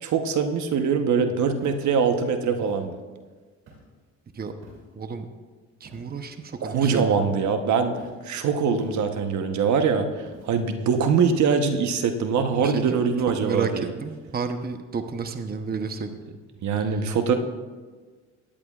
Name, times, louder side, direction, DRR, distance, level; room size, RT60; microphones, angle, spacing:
voice 1, 0.0-3.0 6.6-8.0 8.2-13.9 16.6-17.3, right 6 dB, 70° right, 6 dB, 1.0 m, -23 dB
Walk footsteps, 1.6-1.9 2.6-2.8 3.7-4.0 4.6-5.0 5.8-6.2 7.1-7.6 8.0-8.3 8.8-9.3 10.2-10.7, right 2 dB, 90° right, 2.9 m, -46 dB
voice 2, 4.9-5.3 5.8-7.1 12.6-12.9 13.3-16.2 16.8-17.1, right 5 dB, 30° right, 7 dB, 0.8 m, -31 dB
17.0 x 10.5 x 2.4 m, 1.4 s
cardioid pair, 90°, 30 cm